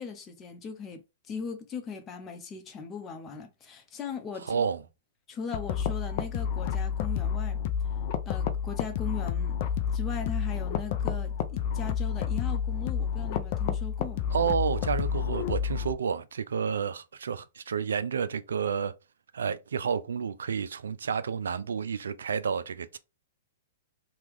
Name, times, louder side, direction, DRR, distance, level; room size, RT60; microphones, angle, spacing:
voice 1, 0.0-4.7 5.3-7.6 8.3-9.6 9.9-14.2, left 5 dB, 25° left, 0.8 m, -39 dB
voice 2, 4.4-4.8 14.3-18.9 19.3-23.0, right 6 dB, 85° right, 0.3 m, -30 dB
sound 1, 5.5-15.9, left 7 dB, 50° left, 0.4 m, -30 dB
2.9 x 2.3 x 3.5 m
hypercardioid pair, 125°, 0 cm